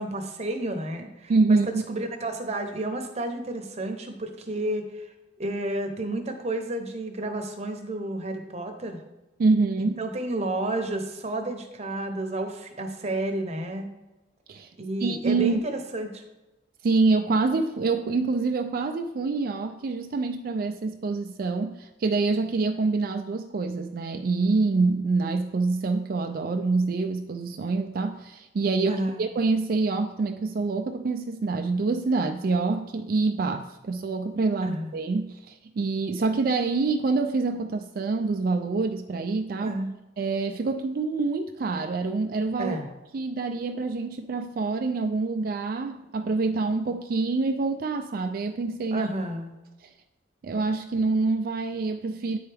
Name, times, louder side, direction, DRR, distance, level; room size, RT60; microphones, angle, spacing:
voice 1, 0.0-5.1 5.4-9.0 9.8-13.9 14.8-16.2 28.8-29.2 34.6-34.9 39.6-39.9 42.6-42.9 48.9-49.5, right 1 dB, 35° right, 5 dB, 0.8 m, -31 dB
voice 2, 1.3-1.8 9.4-9.9 14.5-14.7 15.0-15.6 16.8-39.8 40.2-42.8 43.1-49.1 50.4-52.4, right 3 dB, 55° right, 6 dB, 0.4 m, -26 dB
9.4 x 4.5 x 3.4 m, 1.0 s
head